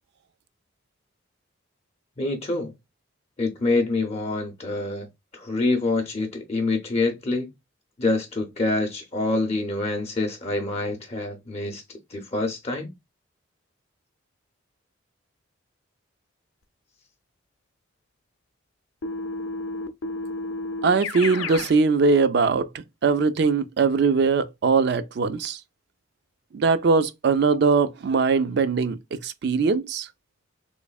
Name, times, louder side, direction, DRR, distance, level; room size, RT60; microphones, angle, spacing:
voice 1, 2.2-2.7 3.4-5.1 5.3-7.5 8.0-12.9, left 2 dB, 30° left, 0.5 m, -26 dB
Keyboard (musical), 19.0-21.7, left 3 dB, 80° left, 0.5 m, -31 dB
voice 2, 20.8-25.6 26.5-30.1, right 4 dB, 55° right, 0.4 m, -21 dB
3.4 x 3.1 x 2.3 m
head